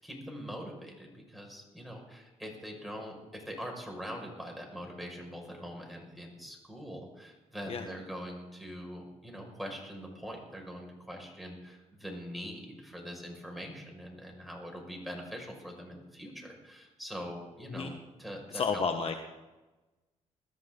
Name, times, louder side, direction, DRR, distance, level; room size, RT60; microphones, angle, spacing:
voice 1, 0.0-17.9 18.2-18.8, equal, ahead, 1 dB, 6.1 m, -43 dB
voice 2, 18.5-19.1, left 5 dB, 45° left, 6 dB, 1.4 m, -31 dB
21.5 x 13.5 x 4.0 m, 1.1 s
cardioid pair, 75°, 13 cm